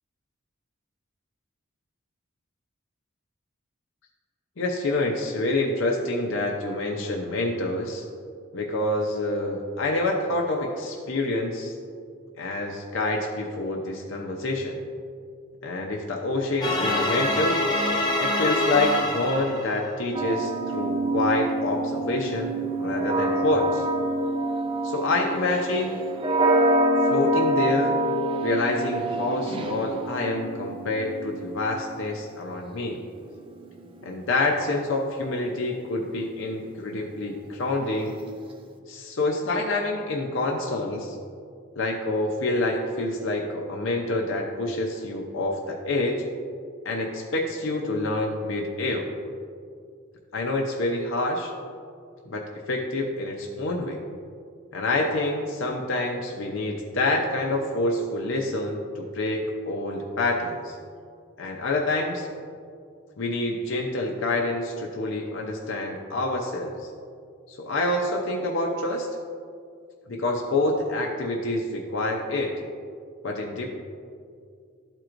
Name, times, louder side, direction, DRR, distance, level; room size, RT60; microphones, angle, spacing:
voice 1, 4.6-8.1 8.5-11.8 12.4-14.8 15.6-17.6 18.2-22.5 22.8-23.9 24.8-26.0 27.1-27.9 28.4-33.0 34.0-38.2 38.9-41.2 41.8-46.2 46.8-49.1 50.3-51.5 52.3-54.0 54.7-60.8 61.4-62.3 63.2-66.9 67.5-69.1 70.1-72.6 73.2-73.7, left 2 dB, 65° left, 0 dB, 0.6 m, -27 dB
sound 1, 16.6-19.9, left 2 dB, 20° left, 0.6 m, -25 dB
sound 2, 20.1-32.1 33.1-34.4, right 1 dB, 25° right, 0.4 m, -26 dB
12.0 x 4.5 x 2.5 m, 2.3 s
head